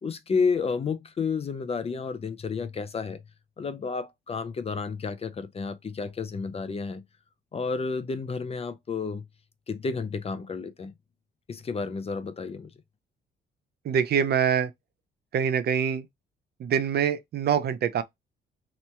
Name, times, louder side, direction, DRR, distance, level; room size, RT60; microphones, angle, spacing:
voice 1, 0.0-3.2 3.6-7.0 7.5-9.3 9.7-10.9 11.5-12.7, left 5 dB, 30° left, 0.5 m, -31 dB
voice 2, 13.8-14.7 15.3-16.1 16.6-18.0, right 7 dB, 55° right, 0.5 m, -24 dB
3.0 x 2.1 x 4.1 m
cardioid pair, 90°, 20 cm